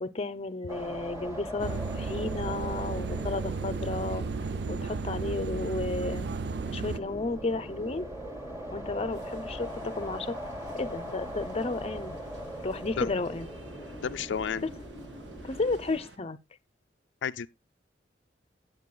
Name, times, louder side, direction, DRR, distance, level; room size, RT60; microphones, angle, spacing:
voice 1, 0.0-4.2 4.7-6.3 6.7-8.1 8.7-10.4 10.7-12.1 12.6-13.5 14.6-14.7 15.4-16.4, left 3 dB, 35° left, 0.6 m, -33 dB
sound 1, 0.7-16.0, equal, 15° right, 3.0 m, -40 dB
sound 2, 1.6-7.0, right 4 dB, 65° right, 0.4 m, -34 dB
sound 3, 9.1-16.2, right 2 dB, 85° right, 1.9 m, -53 dB
voice 2, 14.0-14.6 17.2-17.5, left 7 dB, 80° left, 0.4 m, -31 dB
17.0 x 7.7 x 2.2 m
head